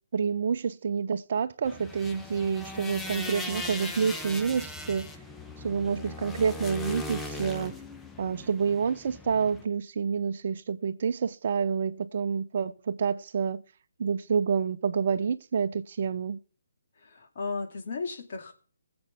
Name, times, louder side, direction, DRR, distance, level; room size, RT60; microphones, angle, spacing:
voice 1, 0.1-5.1 5.6-7.8 8.2-13.6 14.0-16.4, right 6 dB, 45° right, 0.7 m, -28 dB
sound 1, 1.6-9.6, left 2 dB, 5° left, 0.8 m, -39 dB
voice 2, 17.0-18.5, left 4 dB, 45° left, 2.4 m, -35 dB
21.0 x 7.9 x 3.5 m
figure-of-eight pair, 145°, 0 cm